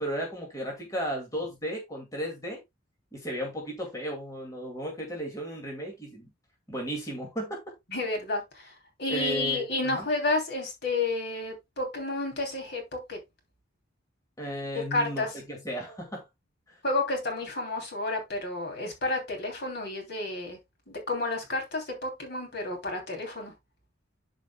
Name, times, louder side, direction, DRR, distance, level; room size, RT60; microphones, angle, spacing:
voice 1, 0.0-2.6 3.1-6.3 6.7-7.6 9.1-10.1 14.4-16.2 16.7-16.8, right 1 dB, 15° left, 2.2 m, -35 dB
voice 2, 7.9-13.2 14.9-15.3 16.8-20.6 20.9-23.5, left 2 dB, 50° left, 3.0 m, -31 dB
12.0 x 5.1 x 2.2 m
head